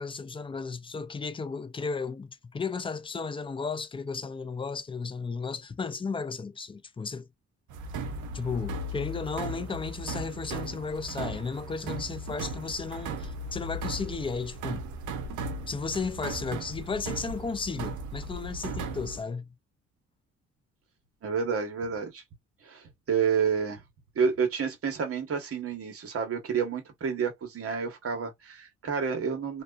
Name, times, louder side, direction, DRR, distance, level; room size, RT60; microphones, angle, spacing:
voice 1, 0.0-7.3 8.3-14.8 15.7-19.5, left 4 dB, 20° left, 0.3 m, -34 dB
sound 1, 7.7-19.2, right 2 dB, 75° right, 0.6 m, -37 dB
voice 2, 21.2-22.2 22.6-23.8 24.1-29.6, right 6 dB, 50° right, 1.1 m, -29 dB
2.3 x 2.3 x 2.3 m
cardioid pair, 90°, 30 cm